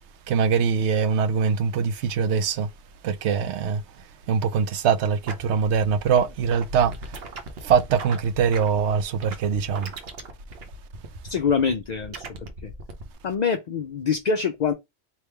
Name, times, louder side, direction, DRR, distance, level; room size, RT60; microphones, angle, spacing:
voice 1, 0.3-2.7 3.0-3.8 4.3-6.9 7.6-9.9, right 6 dB, 85° right, 0.9 m, -22 dB
sound 1, 5.2-13.1, right 2 dB, 65° right, 1.0 m, -39 dB
voice 2, 11.3-12.3 12.6-12.7 13.2-14.7, left 6 dB, 55° left, 0.5 m, -24 dB
3.5 x 3.0 x 4.4 m
omnidirectional pair, 1.1 m